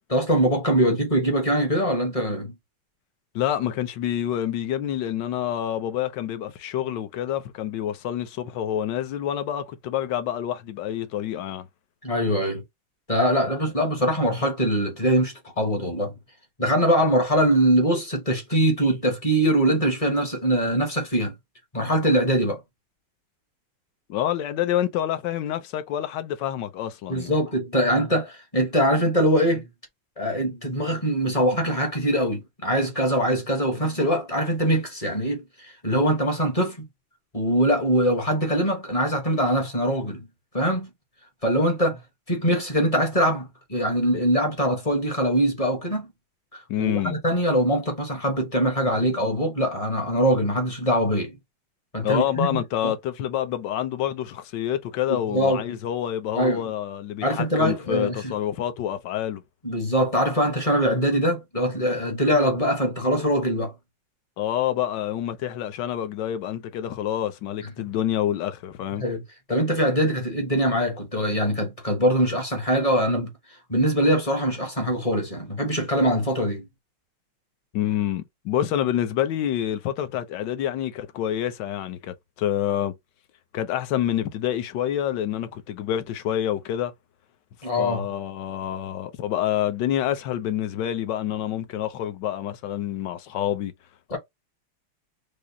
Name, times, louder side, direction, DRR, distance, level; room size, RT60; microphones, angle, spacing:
voice 1, 0.1-2.5 12.0-12.6 13.1-16.1 16.6-21.3 21.7-22.6 27.1-29.6 30.2-35.4 35.8-36.8 37.3-40.2 40.5-40.9 41.4-42.0 42.3-46.1 46.5-51.4 51.9-52.9 55.1-55.6 56.3-56.6 57.2-58.3 59.6-63.7 69.0-69.2 69.5-73.3 73.7-76.7 87.6-88.0 94.1-94.2, equal, 25° left, 0.7 m, -23 dB
voice 2, 3.3-11.7 24.1-27.3 46.7-47.2 52.0-59.4 64.4-69.0 77.7-82.9 83.5-86.9 87.8-93.7 94.1-94.2, left 11 dB, 70° left, 1.2 m, -27 dB
5.0 x 2.0 x 2.7 m
omnidirectional pair, 2.2 m